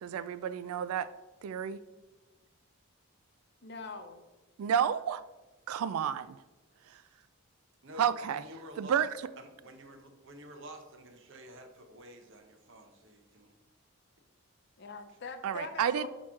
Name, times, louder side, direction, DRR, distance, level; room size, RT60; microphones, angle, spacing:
voice 1, 0.0-1.1 1.4-1.8 4.6-5.2 5.7-6.4 8.0-8.4 8.8-9.1 15.4-16.1, right 8 dB, 85° right, 17 dB, 0.3 m, -30 dB
voice 2, 3.6-4.2 14.8-16.1, left 3 dB, 50° left, 7 dB, 0.6 m, -42 dB
voice 3, 7.8-9.0 9.4-13.5, equal, 60° right, 5 dB, 0.8 m, -50 dB
6.4 x 3.0 x 5.7 m, 1.2 s
head